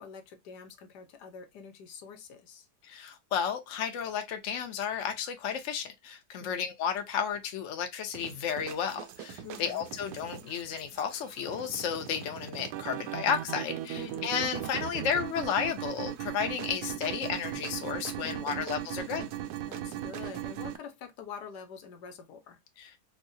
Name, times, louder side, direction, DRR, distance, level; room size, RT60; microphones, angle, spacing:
voice 1, 0.0-2.7 6.4-6.7 9.4-9.9 13.9-14.4 18.2-18.7 19.7-22.6, left 6 dB, 80° left, 1.3 m, -46 dB
voice 2, 2.8-19.3 22.8-23.0, left 7 dB, 60° left, 0.9 m, -33 dB
sound 1, 8.1-20.8, right 12 dB, 75° right, 1.1 m, -38 dB
4.6 x 2.1 x 2.6 m
omnidirectional pair, 1.8 m